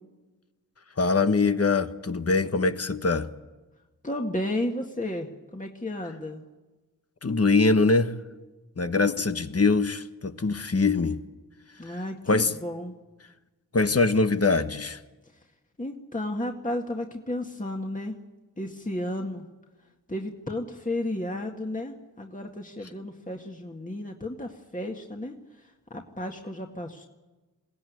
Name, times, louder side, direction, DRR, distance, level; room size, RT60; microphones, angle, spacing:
voice 1, 1.0-3.3 7.2-8.1 8.8-11.2 12.3-12.5 13.7-15.0, left 3 dB, 40° left, 1.4 m, -23 dB
voice 2, 4.0-6.4 11.8-13.0 15.8-18.2 18.6-19.4 20.1-27.1, left 1 dB, 20° left, 2.0 m, -33 dB
21.5 x 17.0 x 9.6 m
cardioid pair, 40°, 36 cm